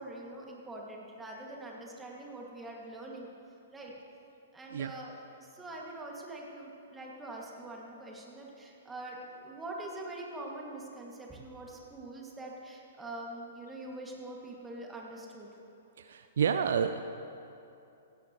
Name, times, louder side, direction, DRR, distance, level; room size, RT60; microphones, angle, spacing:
voice 1, 0.0-3.3 3.7-3.9 4.5-15.5, right 2 dB, 10° right, -2 dB, 2.4 m, -44 dB
voice 2, 16.0-17.0, right 7 dB, 60° right, 10 dB, 0.4 m, -29 dB
16.5 x 16.0 x 3.2 m, 2.8 s
figure-of-eight pair, 110°, 0 cm